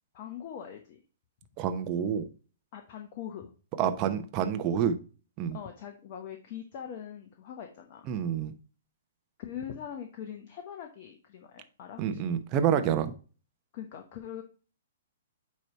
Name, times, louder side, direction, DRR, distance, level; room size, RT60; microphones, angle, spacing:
voice 1, 0.1-1.0 2.7-3.5 3.8-4.0 5.5-8.1 9.4-12.2 13.7-14.4, left 9 dB, 45° left, 4 dB, 0.9 m, -42 dB
voice 2, 1.6-2.3 3.8-5.0 5.4-5.6 8.1-8.5 12.0-13.1, right 8 dB, 35° right, 8 dB, 0.8 m, -28 dB
9.0 x 3.2 x 4.2 m, 0.37 s
figure-of-eight pair, 120°, 0 cm